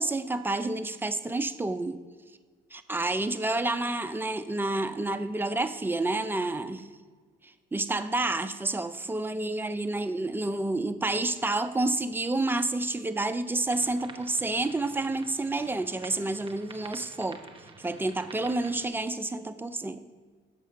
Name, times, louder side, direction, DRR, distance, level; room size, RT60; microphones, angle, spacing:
voice 1, 0.0-2.0 2.7-7.0 7.7-17.4 17.8-20.1, right 2 dB, 10° right, 10 dB, 0.4 m, -29 dB
sound 1, 13.7-18.9, right 4 dB, 25° right, 0.8 m, -49 dB
6.6 x 4.8 x 6.7 m, 1.6 s
cardioid pair, 90°, 20 cm